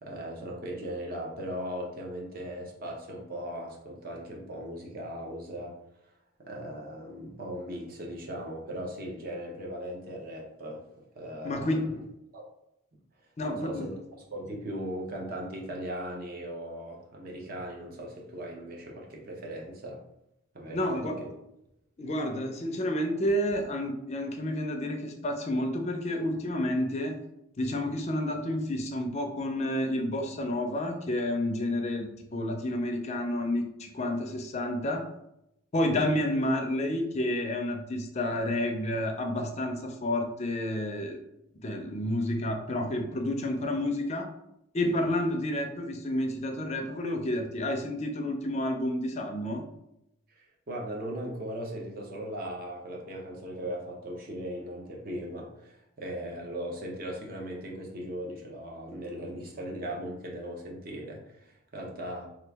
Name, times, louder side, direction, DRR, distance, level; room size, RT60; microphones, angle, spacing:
voice 1, 0.0-5.7 6.4-10.8 11.1-12.0 12.3-12.4 13.5-13.9 14.3-20.0 20.5-21.3 35.9-36.0 50.3-62.3, equal, 45° right, -1 dB, 0.7 m, -38 dB
voice 2, 11.4-11.8 13.4-13.9 20.7-21.2 22.0-27.2 27.6-35.0 35.7-41.2 41.6-44.3 44.7-49.6, left 1 dB, 35° left, 4 dB, 0.4 m, -30 dB
2.9 x 2.4 x 3.3 m, 0.83 s
head